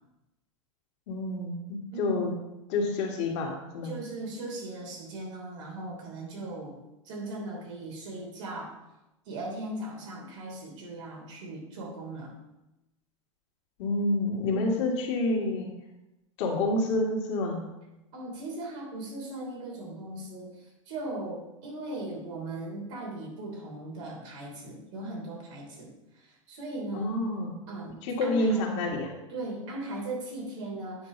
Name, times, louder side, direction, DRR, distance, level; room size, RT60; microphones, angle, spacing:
voice 1, 1.1-2.3 2.7-3.9 13.8-15.7 16.4-17.6 26.9-27.5 28.0-29.1, left 2 dB, 55° left, -1 dB, 2.2 m, -28 dB
voice 2, 1.9-2.3 3.8-6.8 7.0-8.7 9.3-12.4 14.5-14.8 18.1-27.3 27.7-28.8 29.3-31.1, right 2 dB, 60° right, -1 dB, 3.2 m, -38 dB
9.2 x 4.6 x 5.4 m, 0.95 s
hypercardioid pair, 100°, 17 cm